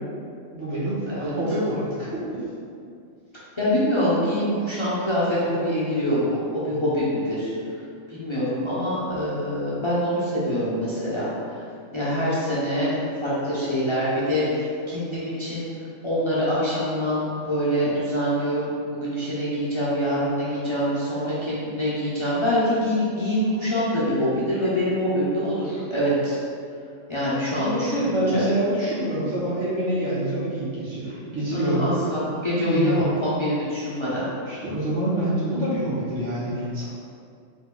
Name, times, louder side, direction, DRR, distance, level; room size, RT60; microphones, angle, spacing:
voice 1, 0.5-2.4 27.5-31.9 32.5-33.0 34.5-36.8, right 1 dB, 70° right, -9 dB, 1.7 m, -26 dB
voice 2, 3.6-7.5 8.1-11.6 11.9-15.7 16.0-26.4 27.1-28.4 31.5-34.3, equal, 25° left, -10 dB, 0.8 m, -25 dB
3.9 x 3.5 x 3.8 m, 2.3 s
omnidirectional pair, 1.3 m